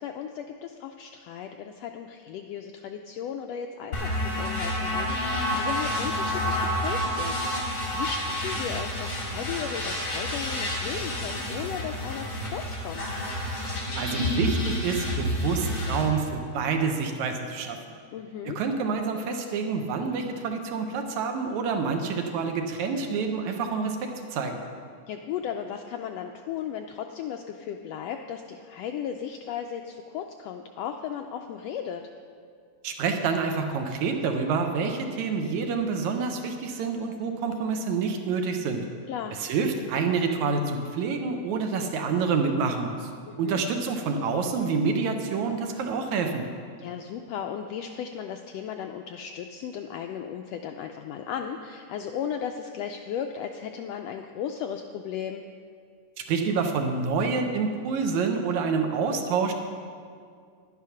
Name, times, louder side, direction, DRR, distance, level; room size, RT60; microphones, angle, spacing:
voice 1, 0.0-13.0 18.1-18.6 25.1-32.0 39.1-39.3 43.3-43.6 46.8-55.4, left 8 dB, 85° left, 5 dB, 1.4 m, -36 dB
sound 1, 3.9-16.0, equal, 40° left, 3.5 m, -29 dB
voice 2, 14.0-17.8 18.5-24.6 32.8-38.8 39.4-43.1 43.4-46.4 56.2-59.5, right 5 dB, 75° right, 5 dB, 2.1 m, -27 dB
11.0 x 9.7 x 5.7 m, 2.2 s
omnidirectional pair, 3.4 m